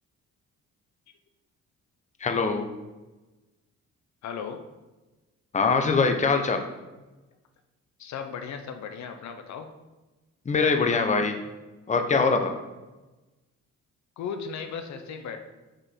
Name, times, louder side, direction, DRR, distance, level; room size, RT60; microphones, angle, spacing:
voice 1, 2.2-2.7 5.5-6.6 10.5-11.3 11.9-12.6, left 4 dB, 25° left, 5 dB, 0.7 m, -23 dB
voice 2, 4.2-4.6 8.0-9.7 14.2-15.4, left 6 dB, 65° left, 7 dB, 0.7 m, -36 dB
5.0 x 4.8 x 4.3 m, 1.1 s
cardioid pair, 90°, 30 cm